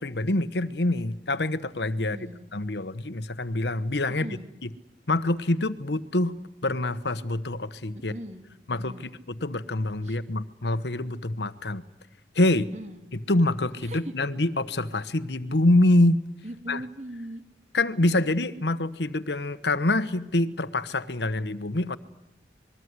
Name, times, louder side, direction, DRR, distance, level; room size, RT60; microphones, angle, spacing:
voice 1, 0.0-2.2 2.5-4.3 4.6-4.7 5.1-6.4 6.6-8.1 8.7-11.8 12.3-12.7 13.3-16.2 16.7-16.8 17.7-22.0, left 2 dB, 75° left, 14 dB, 1.3 m, -25 dB
voice 2, 7.9-8.4 8.7-9.0 10.0-10.2 12.7-13.0 13.8-14.1 16.4-17.4, right 1 dB, 40° right, 7 dB, 3.0 m, -39 dB
27.0 x 21.5 x 9.7 m, 0.86 s
head